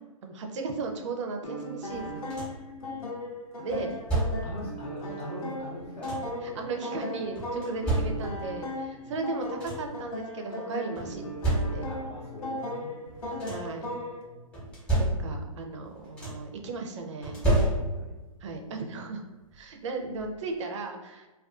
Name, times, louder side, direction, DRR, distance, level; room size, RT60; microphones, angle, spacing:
voice 1, 0.2-2.3 3.6-4.0 6.4-11.9 13.5-13.9 15.0-17.4 18.4-19.2 19.5-21.3, right 3 dB, 55° right, 3 dB, 0.5 m, -36 dB
sound 1, 1.4-14.2, left 1 dB, 75° left, 0.8 m, -37 dB
sound 2, 1.9-2.7 3.7-4.6 5.6-6.4 7.4-8.6 9.1-9.2 9.4-10.0 11.0-12.1 13.1-13.8 14.5-15.6 15.8-16.6 17.2-18.2 19.5-19.6 20.1-20.3, right 1 dB, 5° left, 0.8 m, -30 dB
voice 2, 4.1-6.7 7.1-7.3 8.1-8.3 8.9-9.2 9.6-9.8 11.0-11.2 11.8-14.6 17.5-18.2 18.6-19.1 20.0-20.2, left 1 dB, 30° left, -7 dB, 0.6 m, -44 dB
2.4 x 2.3 x 2.3 m, 1.2 s
hypercardioid pair, 140°, 18 cm